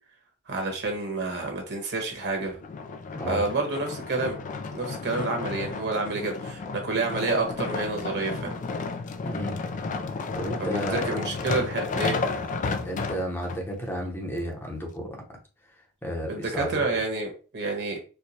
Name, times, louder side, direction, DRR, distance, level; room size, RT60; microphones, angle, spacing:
voice 1, 0.5-2.6 3.3-4.4 4.7-8.5 10.6-12.2 16.3-18.0, right 3 dB, 50° right, 2 dB, 1.1 m, -29 dB
sound 1, 2.6-13.6 14.2-14.3, left 4 dB, 35° left, 0.3 m, -32 dB
voice 2, 3.1-3.5 9.2-9.6 10.4-11.2 12.6-15.1 16.0-17.0, equal, 10° left, 0 dB, 0.8 m, -32 dB
4.5 x 2.2 x 2.7 m, 0.35 s
head